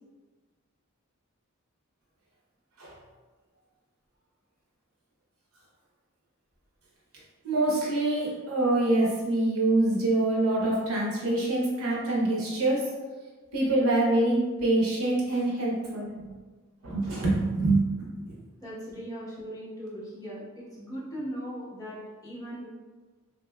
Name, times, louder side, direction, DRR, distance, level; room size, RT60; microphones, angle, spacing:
voice 1, 7.4-12.9 13.5-16.3 16.8-18.4, right 2 dB, 85° right, -4 dB, 0.9 m, -25 dB
voice 2, 18.6-22.7, equal, 15° left, -8 dB, 0.9 m, -39 dB
3.4 x 2.7 x 2.2 m, 1.3 s
head